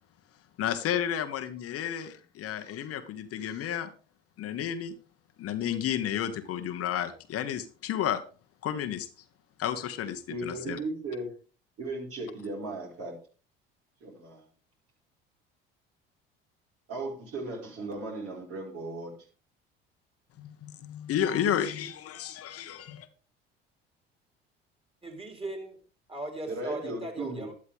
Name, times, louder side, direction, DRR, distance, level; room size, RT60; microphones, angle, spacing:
voice 1, 0.6-3.9 4.4-4.9 5.4-8.2 8.6-9.1 9.6-10.8 20.4-23.1, left 10 dB, 50° left, 1.3 m, -32 dB
voice 2, 10.3-11.4 11.8-13.2 14.0-14.4 16.9-19.2 26.5-27.5, right 2 dB, 50° right, 5.1 m, -36 dB
voice 3, 25.0-25.8 26.1-27.5, right 1 dB, 20° right, 4.1 m, -38 dB
12.0 x 11.0 x 3.6 m
hypercardioid pair, 65°, 29 cm